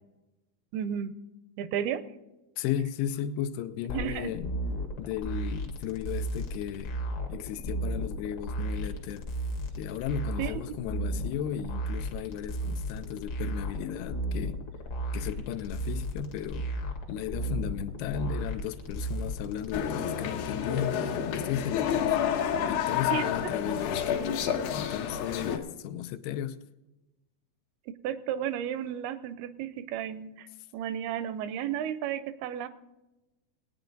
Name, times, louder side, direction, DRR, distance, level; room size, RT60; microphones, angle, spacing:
voice 1, 0.7-1.1 1.6-2.0 3.9-4.3 10.4-10.6 23.1-23.3 27.9-30.5 30.7-32.7, right 9 dB, 80° right, 13 dB, 2.5 m, -33 dB
voice 2, 2.6-4.5 5.0-7.0 7.3-9.3 9.8-14.6 15.1-16.7 17.1-26.6, left 10 dB, 90° left, 12 dB, 2.6 m, -35 dB
sound 1, 3.9-19.8, right 1 dB, 55° left, 1.6 m, -34 dB
sound 2, 19.7-25.6, left 8 dB, 70° left, 2.7 m, -29 dB
20.0 x 9.2 x 3.9 m, 1.0 s
omnidirectional pair, 4.5 m